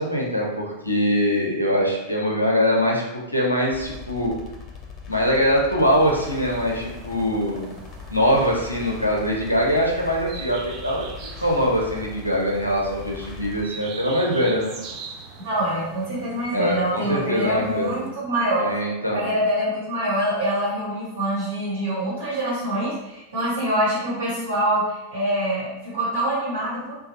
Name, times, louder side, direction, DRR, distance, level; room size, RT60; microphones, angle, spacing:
voice 1, 0.0-4.3 5.1-7.7 8.1-11.1 11.4-14.7 16.5-18.0 18.6-19.3, equal, 90° left, -2 dB, 0.6 m, -22 dB
sound 1, 3.7-13.7, left 5 dB, 30° left, 0.5 m, -40 dB
sound 2, 5.8-18.1, right 4 dB, 35° right, 0.4 m, -42 dB
voice 2, 15.4-18.7 19.1-26.9, right 1 dB, 70° right, -8 dB, 1.1 m, -25 dB
3.2 x 2.3 x 2.7 m, 0.95 s
figure-of-eight pair, 90°, 0 cm